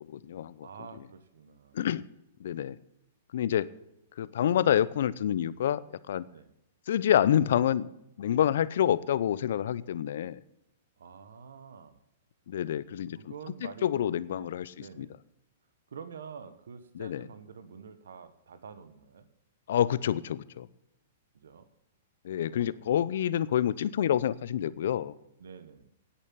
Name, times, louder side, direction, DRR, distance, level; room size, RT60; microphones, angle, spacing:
voice 1, 0.1-0.7 1.7-2.0 2.4-2.8 3.3-3.7 4.2-6.2 6.9-7.9 8.2-10.4 12.5-13.2 13.8-15.1 17.0-17.2 19.7-20.7 22.2-25.1, left 10 dB, 70° left, 18 dB, 0.6 m, -27 dB
voice 2, 0.6-1.8 6.3-6.5 11.0-12.0 13.2-15.2 15.9-19.3 21.3-21.7 22.5-22.9 25.4-25.9, right 6 dB, 80° right, 12 dB, 1.3 m, -48 dB
9.9 x 8.7 x 8.7 m, 0.82 s
hypercardioid pair, 125°, 0 cm